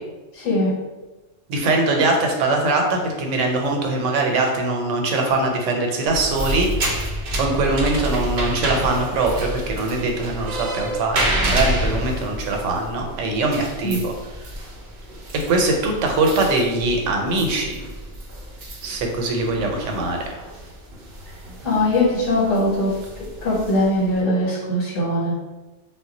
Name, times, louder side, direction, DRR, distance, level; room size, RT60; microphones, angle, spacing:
voice 1, 0.3-0.7 13.8-14.0 21.6-25.3, left 1 dB, 80° left, -5 dB, 1.1 m, -21 dB
voice 2, 1.5-6.7 7.4-14.1 15.5-17.7 18.8-20.2, right 2 dB, 85° right, 2 dB, 0.9 m, -22 dB
sound 1, 6.1-24.2, right 1 dB, 60° right, 0.6 m, -29 dB
2.1 x 2.0 x 3.7 m, 1.1 s
omnidirectional pair, 1.2 m